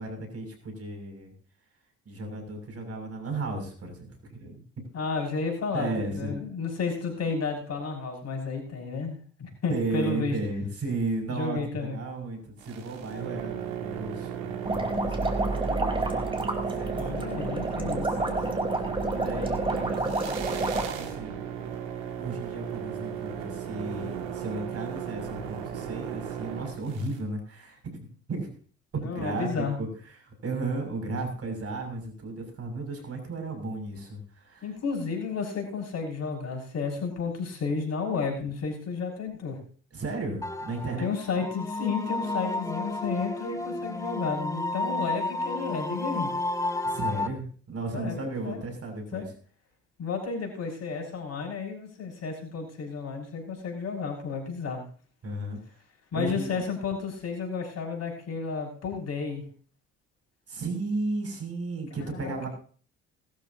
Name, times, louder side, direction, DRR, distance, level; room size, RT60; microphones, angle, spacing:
voice 1, 0.0-1.3 2.1-4.8 5.7-6.4 9.7-16.4 16.7-17.0 17.9-18.4 19.1-21.4 22.2-28.5 28.9-29.9 30.2-34.7 39.9-41.1 46.8-49.3 55.2-55.8 56.1-56.5 60.5-62.5, right 2 dB, 40° right, 4 dB, 6.9 m, -34 dB
voice 2, 4.9-5.9 6.1-10.4 11.3-12.0 16.9-18.1 29.0-29.8 34.6-39.6 41.0-46.3 47.9-48.6 49.1-49.2 50.0-54.9 56.1-59.4 62.1-62.5, left 5 dB, 45° left, 1 dB, 6.2 m, -32 dB
sound 1, 12.6-27.2, right 9 dB, 70° right, 2.3 m, -36 dB
sound 2, 14.7-20.9, right 2 dB, 15° right, 4.1 m, -29 dB
sound 3, 40.4-47.3, left 2 dB, 10° left, 2.1 m, -32 dB
21.5 x 13.0 x 2.9 m, 0.43 s
figure-of-eight pair, 55°, 35 cm